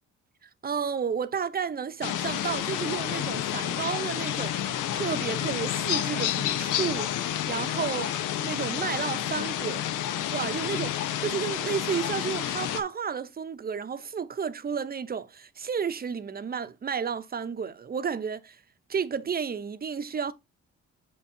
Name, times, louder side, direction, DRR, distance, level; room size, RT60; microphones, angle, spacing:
voice 1, 0.6-8.1 8.4-9.9 10.3-10.9 11.2-18.6 18.9-20.3, right 6 dB, 30° right, 0.7 m, -32 dB
sound 1, 2.0-12.8, left 11 dB, 90° left, 0.9 m, -30 dB
6.5 x 5.7 x 2.7 m
cardioid pair, 90°, 30 cm